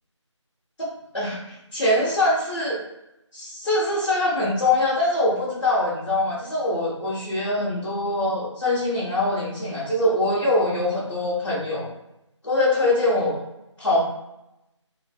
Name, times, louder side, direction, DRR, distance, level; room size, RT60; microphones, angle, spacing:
voice 1, 1.1-2.8 3.3-11.9 12.4-13.3 13.8-14.0, left 2 dB, 65° left, -8 dB, 1.2 m, -23 dB
3.2 x 2.5 x 2.4 m, 0.88 s
figure-of-eight pair, 175°, 16 cm